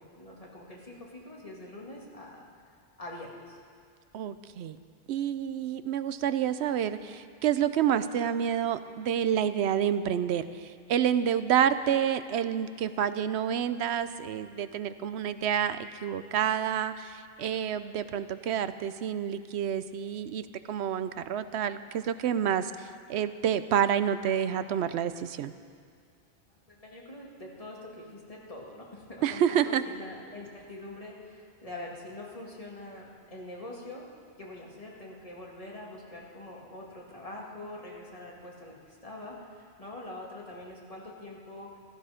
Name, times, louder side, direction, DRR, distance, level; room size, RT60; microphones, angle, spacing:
voice 1, 0.0-2.4 3.0-3.6 26.5-34.1 34.4-41.7, left 1 dB, 35° left, -3 dB, 2.2 m, -44 dB
voice 2, 4.1-4.8 5.1-25.5 29.2-29.8, right 9 dB, 85° right, 12 dB, 0.9 m, -28 dB
16.0 x 13.5 x 5.0 m, 2.2 s
omnidirectional pair, 1.1 m